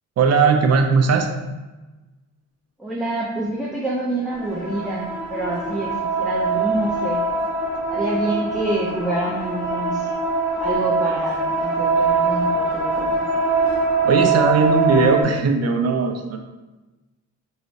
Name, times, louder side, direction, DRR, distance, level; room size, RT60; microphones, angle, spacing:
voice 1, 0.2-1.3 14.0-16.4, right 5 dB, 55° right, 4 dB, 0.6 m, -18 dB
voice 2, 2.8-5.9 6.2-7.2 7.9-10.1 10.6-13.3, right 1 dB, ahead, -5 dB, 0.6 m, -27 dB
sound 1, 4.3-15.2, right 3 dB, 60° left, 1.5 m, -23 dB
4.7 x 2.0 x 4.0 m, 1.1 s
cardioid pair, 110°, 30 cm